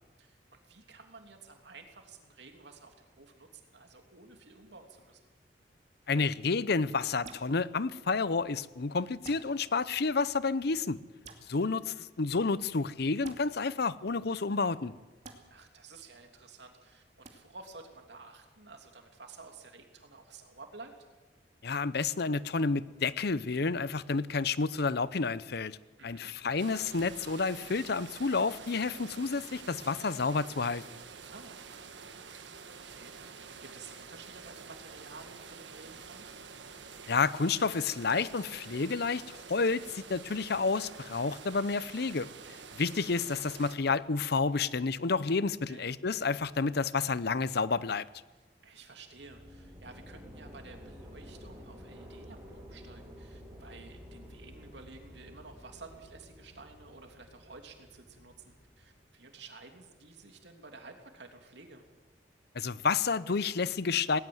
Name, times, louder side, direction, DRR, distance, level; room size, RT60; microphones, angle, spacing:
voice 1, 0.2-5.2 11.9-12.0 15.5-20.9 26.0-26.3 31.3-31.7 32.7-36.3 45.7-45.9 48.6-61.8, right 3 dB, 70° right, 4 dB, 3.1 m, -52 dB
voice 2, 6.1-11.0 11.5-14.9 21.6-25.8 26.0-30.8 37.1-42.3 42.7-48.0 62.5-64.2, left 4 dB, 65° left, 17 dB, 0.7 m, -30 dB
sound 1, 7.2-7.5 9.2-9.5 11.2-11.4 13.2-13.4 15.2-15.4 17.2-17.3, right 3 dB, 40° right, 2.6 m, -47 dB
sound 2, 26.6-43.8, right 5 dB, 85° right, 1.6 m, -48 dB
sound 3, 49.1-59.1, equal, 20° right, 7.0 m, -51 dB
18.5 x 18.5 x 8.0 m, 1.2 s
head